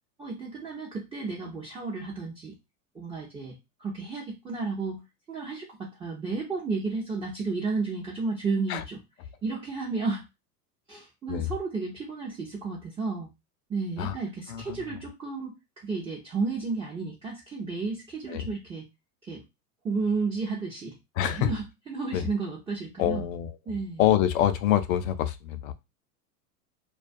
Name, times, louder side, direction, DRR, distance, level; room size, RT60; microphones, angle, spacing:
voice 1, 0.2-2.5 2.9-5.0 5.3-9.0 9.4-10.2 10.9-13.3 13.7-15.5 15.8-18.9 19.2-19.4 19.8-21.0 21.3-23.3 23.7-24.0, right 4 dB, 10° right, -3 dB, 0.5 m, -32 dB
voice 2, 14.5-14.9 18.3-18.5 21.2-21.5 22.1-22.3 23.0-23.5 24.0-25.7, left 11 dB, 60° left, 11 dB, 0.5 m, -26 dB
2.3 x 2.2 x 2.5 m, 0.23 s
hypercardioid pair, 105°, 47 cm